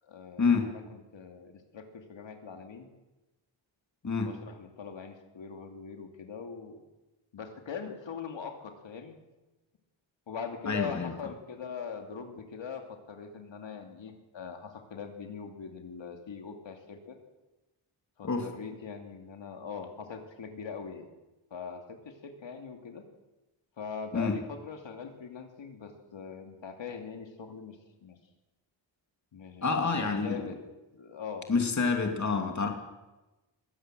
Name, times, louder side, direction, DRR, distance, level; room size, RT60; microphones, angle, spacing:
voice 1, 0.0-2.9 4.2-6.8 7.3-9.2 10.3-17.2 18.2-21.1 21.5-23.0 23.8-28.2 29.3-30.6 30.9-31.5, left 6 dB, 65° left, 4 dB, 2.7 m, -42 dB
voice 2, 10.7-11.1 18.2-18.5 24.1-24.4 29.6-30.4 31.5-32.7, left 4 dB, 35° left, 3 dB, 2.6 m, -27 dB
22.0 x 17.0 x 7.7 m, 1.1 s
wide cardioid pair, 140°, 47 cm